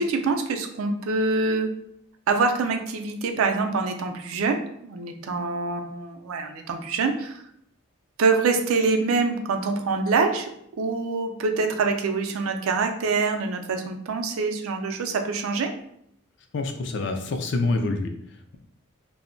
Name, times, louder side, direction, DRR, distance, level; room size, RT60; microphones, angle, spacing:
voice 1, 0.0-1.7 2.3-7.4 8.2-10.5 10.8-15.7, right 4 dB, 80° right, 5 dB, 0.4 m, -25 dB
voice 2, 16.5-18.6, left 3 dB, 55° left, 6 dB, 0.3 m, -27 dB
2.1 x 2.0 x 3.8 m, 0.72 s
head